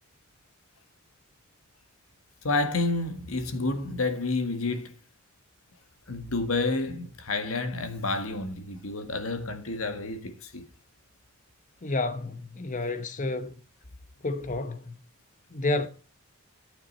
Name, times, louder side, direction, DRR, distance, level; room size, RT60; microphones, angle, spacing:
voice 1, 2.4-4.9 6.1-10.6, left 3 dB, 75° left, 1.7 m, -29 dB
voice 2, 11.8-13.5 14.2-15.0 15.5-15.9, left 2 dB, 35° left, 0.8 m, -30 dB
10.5 x 9.3 x 4.2 m
head